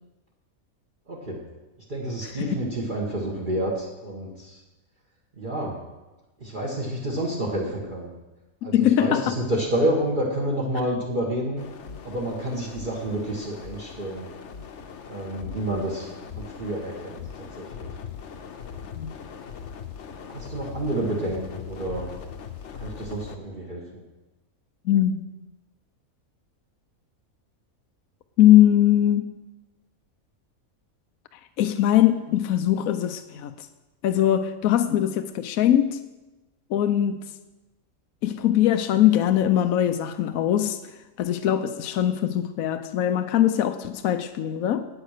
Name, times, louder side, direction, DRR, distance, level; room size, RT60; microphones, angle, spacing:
voice 1, 1.1-1.4 1.9-4.6 5.4-5.8 6.4-8.1 8.6-11.6 12.0-14.3 15.1-17.9 20.3-22.1 22.7-23.8, right 1 dB, 35° right, -2 dB, 1.7 m, -29 dB
voice 2, 8.7-9.3 18.9-19.1 24.8-25.3 28.4-29.3 31.6-33.7 34.0-36.0 36.7-37.2 38.2-40.8 41.2-44.9, left 11 dB, 80° left, 10 dB, 1.1 m, -21 dB
sound 1, 11.6-23.4, left 7 dB, 60° left, 1.1 m, -40 dB
9.4 x 8.9 x 6.6 m, 1.1 s
omnidirectional pair, 1.5 m